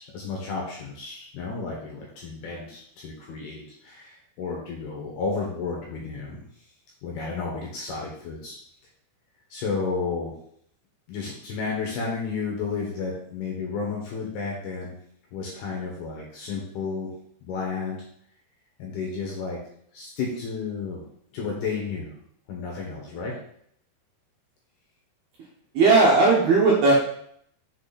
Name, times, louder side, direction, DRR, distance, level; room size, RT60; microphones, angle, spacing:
voice 1, 0.0-6.4 7.0-8.6 9.5-10.3 11.1-14.9 15.3-17.1 17.4-18.0 18.8-19.6 19.9-21.0 21.3-22.1 22.5-23.4, left 4 dB, 70° left, -2 dB, 2.6 m, -32 dB
voice 2, 25.7-26.9, right 3 dB, 70° right, -4 dB, 2.5 m, -17 dB
6.9 x 4.9 x 4.1 m, 0.66 s
omnidirectional pair, 5.8 m